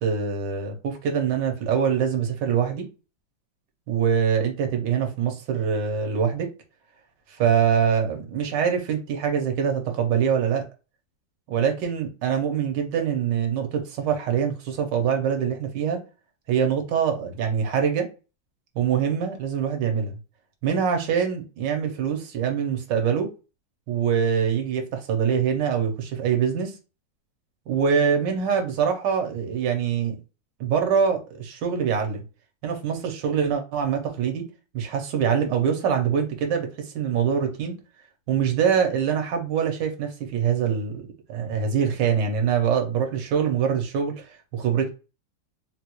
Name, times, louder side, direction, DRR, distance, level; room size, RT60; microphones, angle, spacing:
voice 1, 0.0-2.8 3.9-6.5 7.3-10.6 11.5-16.0 16.5-18.1 18.8-20.1 20.6-23.3 23.9-26.8 27.7-30.2 30.6-32.2 32.6-34.4 34.7-37.7 38.3-44.9, right 7 dB, 70° right, 1.3 m, -24 dB
3.9 x 2.3 x 2.9 m
omnidirectional pair, 2.1 m